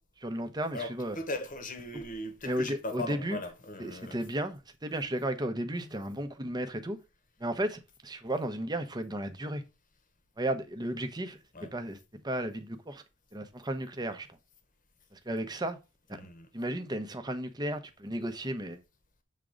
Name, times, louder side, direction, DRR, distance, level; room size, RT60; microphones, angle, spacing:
voice 1, 0.2-1.2 2.4-3.4 3.8-7.0 7.4-9.7 10.4-11.4 11.7-12.0 12.2-13.0 13.3-14.3 15.1-15.8 16.1-16.2 16.5-18.8, right 1 dB, 20° right, 0.8 m, -34 dB
voice 2, 0.7-4.2 11.5-11.7 16.1-16.5, left 2 dB, 40° left, 1.2 m, -38 dB
7.4 x 3.7 x 5.1 m
head